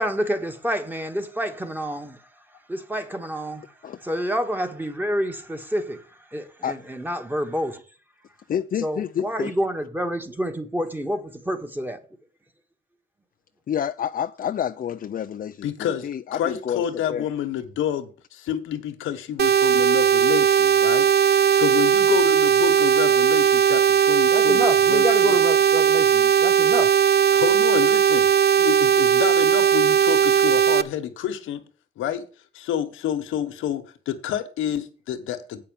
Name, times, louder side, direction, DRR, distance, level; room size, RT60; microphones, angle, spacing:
voice 1, 0.0-2.2 2.7-3.7 4.0-6.0 6.3-7.8 8.8-12.0 24.3-27.0, equal, 10° right, 1.7 m, -28 dB
voice 2, 8.5-9.6 13.7-16.8 17.1-17.3, left 9 dB, 45° left, 0.5 m, -29 dB
voice 3, 15.6-25.4 27.3-28.3 28.6-31.6 32.0-32.2 32.5-35.6, left 10 dB, 90° left, 1.4 m, -29 dB
sound 1, 19.4-30.8, right 8 dB, 55° right, 0.6 m, -18 dB
8.5 x 5.7 x 7.0 m
cardioid pair, 90°, 20 cm